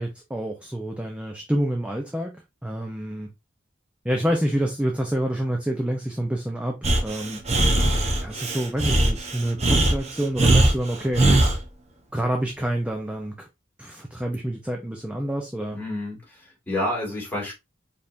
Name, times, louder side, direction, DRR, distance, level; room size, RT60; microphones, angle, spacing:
voice 1, 0.0-2.4 2.6-3.3 4.0-7.4 8.2-11.2 12.1-13.5 13.8-15.8, right 1 dB, 5° right, 0.5 m, -27 dB
Breathing, 6.8-11.6, right 1 dB, 35° right, 0.9 m, -20 dB
voice 2, 15.7-17.5, left 1 dB, 10° left, 2.5 m, -29 dB
4.7 x 3.5 x 2.5 m
head